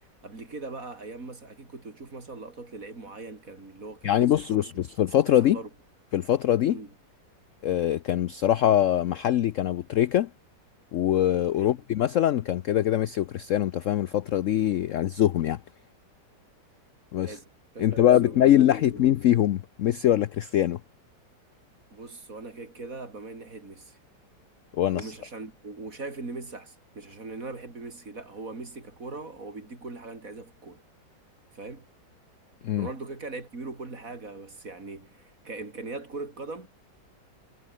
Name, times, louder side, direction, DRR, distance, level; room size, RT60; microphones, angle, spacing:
voice 1, 0.2-4.8 5.4-5.7 6.7-6.9 11.6-11.8 17.2-17.5 17.7-19.1 21.9-24.0 24.9-30.8 31.5-31.9 32.7-36.7, right 3 dB, 45° right, 4.1 m, -40 dB
voice 2, 4.0-5.6 6.1-6.8 7.6-10.3 10.9-15.6 17.1-17.4 17.8-20.8 24.7-25.1 32.6-32.9, left 11 dB, 70° left, 0.7 m, -23 dB
omnidirectional pair, 2.0 m